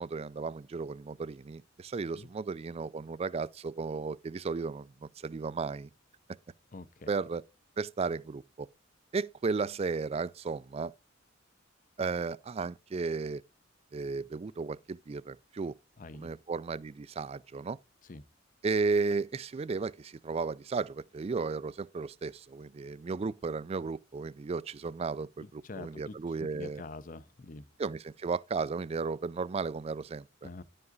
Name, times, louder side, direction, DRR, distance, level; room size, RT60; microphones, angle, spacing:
voice 1, 0.0-5.9 7.1-7.4 7.8-8.7 9.1-10.9 12.0-13.4 13.9-15.7 16.1-17.8 18.6-26.8 27.8-30.5, right 4 dB, 30° right, 0.3 m, -34 dB
voice 2, 6.7-7.1 16.0-16.3 18.0-18.2 25.4-27.6 30.4-30.6, left 3 dB, 40° left, 0.7 m, -46 dB
10.5 x 5.5 x 3.8 m
head